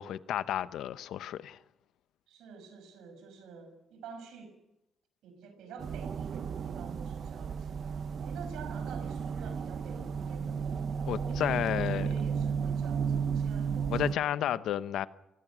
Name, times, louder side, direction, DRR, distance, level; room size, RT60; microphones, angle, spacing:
voice 1, 0.0-1.6 11.1-12.1 13.9-15.1, left 11 dB, 80° left, 0.9 m, -32 dB
voice 2, 2.3-4.5 5.2-7.8 8.2-10.8 11.2-14.6, right 5 dB, 85° right, 5.9 m, -48 dB
sound 1, 5.8-14.1, right 6 dB, 55° right, 1.0 m, -33 dB
27.5 x 20.0 x 6.3 m
cardioid pair, 90°, 0 cm